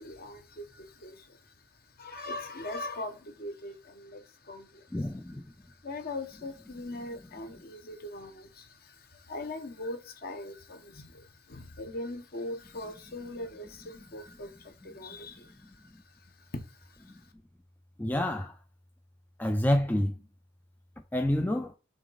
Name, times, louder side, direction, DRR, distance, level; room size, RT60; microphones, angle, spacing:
voice 1, 0.0-1.5 2.0-5.0 5.6-17.2, left 2 dB, 50° left, 1.0 m, -41 dB
voice 2, 4.9-5.5 18.0-18.6 19.4-20.2 21.1-21.7, left 1 dB, 10° left, 0.4 m, -28 dB
6.0 x 4.0 x 4.0 m
head